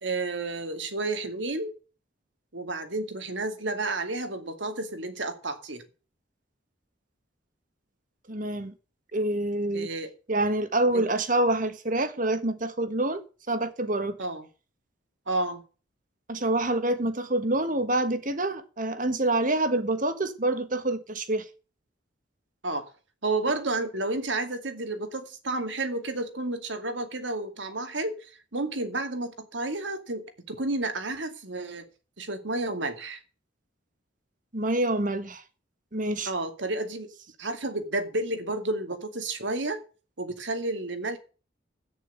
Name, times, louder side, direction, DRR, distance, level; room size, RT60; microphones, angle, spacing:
voice 1, 0.0-1.7 2.5-5.8 9.7-10.1 10.9-11.1 14.2-14.5 15.3-15.6 22.6-22.9 23.2-28.3 28.5-31.9 32.2-33.2 36.3-37.1 37.4-39.8 40.2-41.2, right 2 dB, 70° right, 2.4 m, -31 dB
voice 2, 8.3-8.7 9.1-9.9 10.3-13.2 13.5-14.2 16.3-21.4 34.5-35.4 35.9-36.3, right 2 dB, 45° right, 1.6 m, -26 dB
11.0 x 9.5 x 6.7 m
head